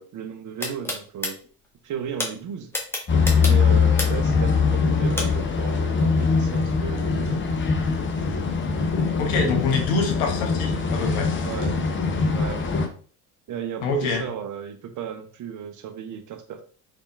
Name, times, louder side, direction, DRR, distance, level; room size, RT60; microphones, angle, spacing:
voice 1, 0.0-1.4 1.8-2.7 3.4-7.4 11.4-11.8 12.3-12.7 13.5-16.6, right 8 dB, 40° right, 7 dB, 0.8 m, -34 dB
sound 1, 0.6-1.3 2.2-2.3 2.7-4.3 5.2-5.3, left 2 dB, 5° left, 1.3 m, -27 dB
sound 2, 3.1-12.9, left 5 dB, 25° left, 0.8 m, -22 dB
voice 2, 9.2-11.3 13.8-14.3, left 4 dB, 70° left, 2 dB, 1.2 m, -25 dB
4.1 x 3.6 x 2.5 m, 0.43 s
hypercardioid pair, 60°, 45 cm